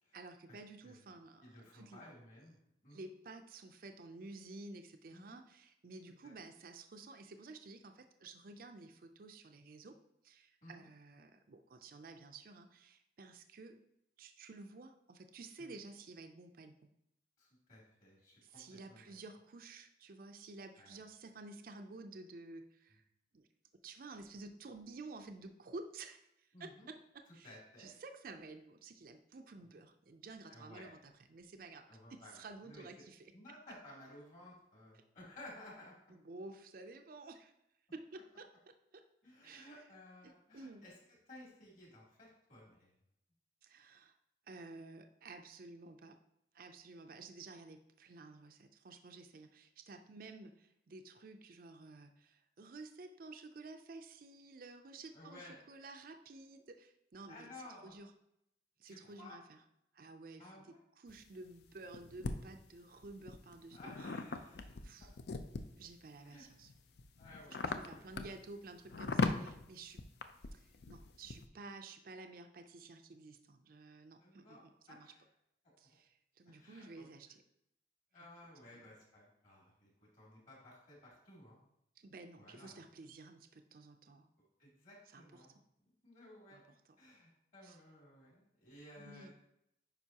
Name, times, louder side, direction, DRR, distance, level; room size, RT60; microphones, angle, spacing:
voice 1, 0.1-2.0 2.9-10.0 10.2-13.8 14.2-16.9 18.4-23.0 23.3-23.5 23.8-33.3 34.9-35.0 36.1-37.5 37.9-38.5 38.9-39.0 39.4-39.7 40.2-40.8 43.6-44.1 44.5-46.2 46.5-57.5 57.8-58.1 58.8-59.6 59.9-64.1 64.8-65.1 65.8-66.7 67.5-70.0 70.5-75.1 75.8-77.4 78.7-78.8 82.0-84.3 85.1-85.5 86.5-86.6 87.6-87.8 89.0-89.3, right 3 dB, 50° right, 6 dB, 0.5 m, -52 dB
voice 2, 1.4-2.6 2.8-3.1 5.1-5.4 6.2-6.3 10.6-10.9 15.6-15.7 17.4-19.1 20.7-21.0 26.5-26.9 27.4-27.9 30.5-30.9 31.9-32.9 33.3-35.9 39.2-40.9 41.3-42.9 55.1-55.5 57.3-58.0 58.8-59.4 60.4-60.8 63.7-64.9 66.2-66.5 67.2-68.2 74.2-75.2 76.5-77.1 78.1-81.6 82.4-82.8 84.6-86.6 87.0-89.3, left 1 dB, 45° left, -5 dB, 2.9 m, -56 dB
sound 1, 61.1-62.3 63.0-65.9 66.4-71.5, left 4 dB, 65° left, 0.5 m, -39 dB
9.1 x 5.3 x 2.8 m, 0.79 s
head